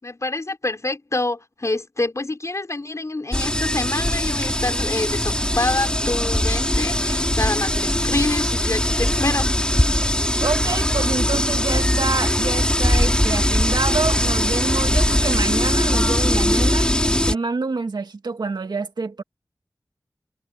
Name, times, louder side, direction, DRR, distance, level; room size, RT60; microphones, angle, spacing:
voice 1, 0.0-9.7, left 2 dB, 45° left, 5.2 m, -26 dB
sound 1, 3.3-17.3, left 1 dB, 15° left, 4.9 m, -21 dB
voice 2, 10.4-16.9 17.3-19.2, right 4 dB, 80° right, 2.5 m, -27 dB
wide cardioid pair, 60°, 7 cm